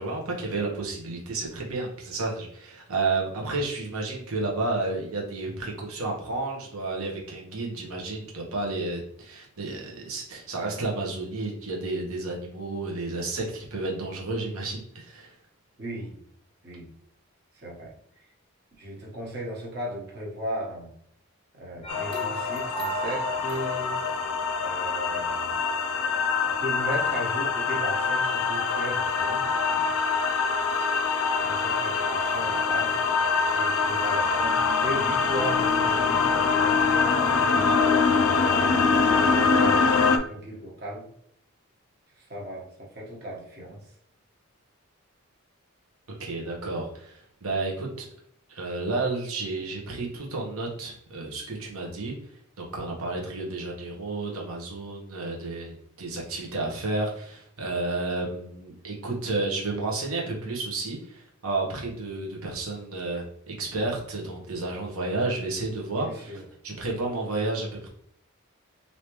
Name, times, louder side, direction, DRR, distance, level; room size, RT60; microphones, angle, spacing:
voice 1, 0.0-15.3 46.2-48.1 48.5-52.1 52.6-67.9, right 2 dB, 80° right, -1 dB, 1.0 m, -31 dB
voice 2, 15.8-16.2 16.6-16.9 17.6-17.9 18.8-20.9 21.5-24.0 24.6-25.6 26.6-29.9 31.4-33.0 33.4-36.8 37.4-41.1 42.3-43.8 66.0-66.4, equal, 45° right, -3 dB, 1.2 m, -36 dB
sound 1, 21.8-24.3, right 3 dB, 25° left, 0.6 m, -36 dB
sound 2, 21.9-40.2, left 5 dB, 75° left, 0.4 m, -24 dB
3.3 x 2.8 x 3.0 m, 0.69 s
head